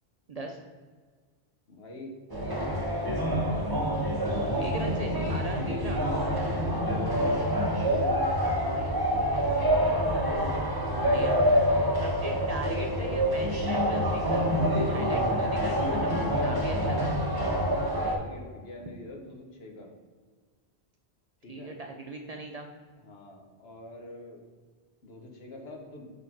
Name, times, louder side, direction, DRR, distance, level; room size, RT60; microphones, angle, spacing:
voice 1, 0.3-0.6 4.6-6.0 8.0-8.1 8.6-9.0 10.9-11.4 12.0-14.5 14.7-16.1 16.4-17.2 21.5-22.7, right 2 dB, 45° right, 2 dB, 0.5 m, -39 dB
voice 2, 1.7-3.1 6.4-7.5 7.8-9.1 15.0-17.0 18.1-19.9 21.4-21.7 23.0-24.4 25.0-26.1, left 2 dB, 70° left, 2 dB, 1.3 m, -45 dB
sound 1, 2.3-18.2, equal, 25° right, 0.9 m, -26 dB
5.7 x 4.0 x 4.4 m, 1.5 s
omnidirectional pair, 1.1 m